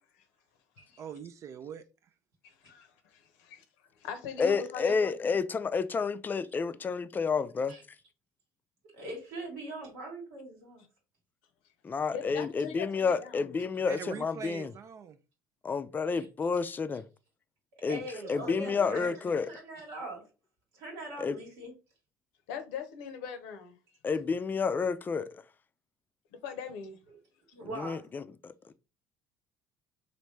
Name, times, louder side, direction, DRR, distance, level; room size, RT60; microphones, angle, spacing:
voice 1, 1.0-1.8 13.9-15.2 18.1-19.2, right 7 dB, 45° right, 0.3 m, -43 dB
voice 2, 2.4-3.6 4.0-5.1 12.1-13.5 22.5-23.8 26.4-27.0, left 7 dB, 80° left, 0.6 m, -40 dB
voice 3, 4.4-7.8 11.8-14.7 15.6-17.0 17.8-18.0 18.3-19.5 21.2-21.4 24.0-25.4 27.8-28.7, left 5 dB, 25° left, 0.4 m, -30 dB
voice 4, 8.9-10.8 16.1-16.3 17.9-20.2 20.7-21.7 27.1-27.2 27.5-28.1, right 1 dB, 85° right, 1.5 m, -42 dB
3.1 x 2.6 x 3.1 m
hypercardioid pair, 75°, 7 cm